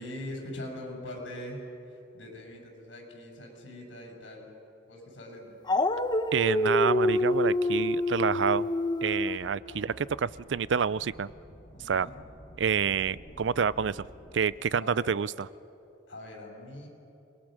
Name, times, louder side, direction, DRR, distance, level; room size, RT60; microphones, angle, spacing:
voice 1, 0.0-4.5 4.9-5.6 9.7-10.0 11.7-12.2 14.8-15.1 16.1-16.9, left 1 dB, 80° left, 1 dB, 7.2 m, -42 dB
Dog, 5.7-9.4, left 1 dB, 25° left, 0.9 m, -26 dB
voice 2, 6.3-8.7 9.0-9.9 10.2-11.3 11.9-12.1 12.6-14.1 14.3-15.5, right 6 dB, 70° right, 19 dB, 0.5 m, -28 dB
sound 1, 9.0-15.3, equal, 40° left, 5.2 m, -52 dB
28.5 x 22.0 x 6.6 m, 2.8 s
head